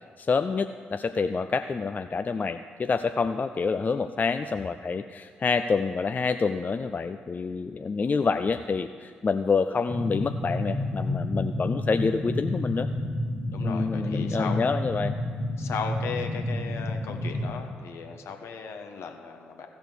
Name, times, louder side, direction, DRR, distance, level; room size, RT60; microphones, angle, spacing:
voice 1, 0.2-12.9 13.6-15.1, left 4 dB, 35° left, 9 dB, 0.4 m, -27 dB
sound 1, 9.9-17.5, left 1 dB, ahead, 1.4 m, -30 dB
voice 2, 13.5-14.6 15.6-19.7, left 5 dB, 60° left, 4 dB, 1.0 m, -36 dB
15.0 x 5.1 x 6.3 m, 2.1 s
hypercardioid pair, 40°, 5 cm